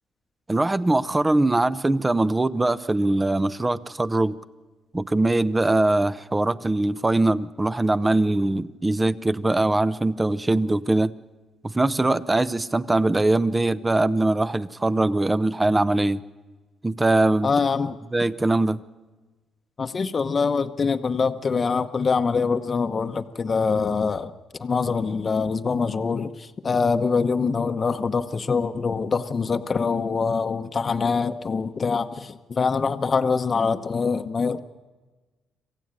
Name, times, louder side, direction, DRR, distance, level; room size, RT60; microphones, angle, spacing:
voice 1, 0.5-4.3 4.9-11.1 11.6-16.2 16.8-17.5 18.1-18.8, right 2 dB, 15° right, 15 dB, 0.8 m, -22 dB
voice 2, 17.4-17.9 19.8-24.3 24.6-34.6, left 5 dB, 40° left, 8 dB, 1.0 m, -24 dB
26.5 x 15.5 x 9.0 m, 1.2 s
cardioid pair, 90°, 0 cm